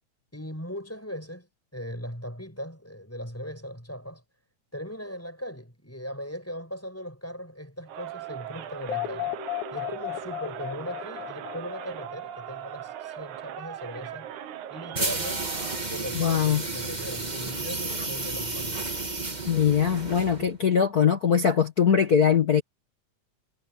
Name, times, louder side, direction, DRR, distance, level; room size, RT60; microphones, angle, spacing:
voice 1, 0.3-4.2 4.7-14.4 14.7-18.9, equal, 5° left, 5.8 m, -39 dB
Crowd, 7.9-16.0, right 11 dB, 80° right, 2.6 m, -39 dB
sound 1, 8.9-12.9, left 14 dB, 75° left, 3.1 m, -35 dB
sound 2, 14.9-20.6, right 3 dB, 15° right, 1.6 m, -32 dB
voice 2, 16.1-16.6 19.5-22.6, left 7 dB, 55° left, 1.0 m, -21 dB
omnidirectional pair, 3.5 m